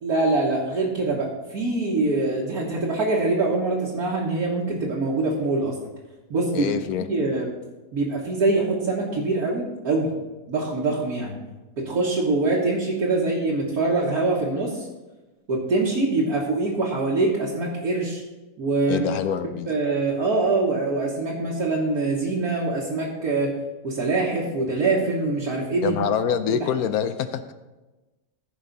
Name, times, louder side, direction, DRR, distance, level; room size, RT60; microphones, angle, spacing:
voice 1, 0.0-5.7 6.3-6.7 7.0-7.5 7.9-10.1 10.5-11.4 11.8-14.9 15.5-18.2 18.6-19.1 19.7-23.5 23.8-26.0, right 3 dB, 65° right, -5 dB, 1.7 m, -24 dB
voice 2, 6.5-7.1 13.2-13.3 18.9-19.7 25.8-27.5, left 8 dB, 70° left, 11 dB, 1.0 m, -25 dB
15.0 x 5.4 x 3.9 m, 1.1 s
omnidirectional pair, 1.8 m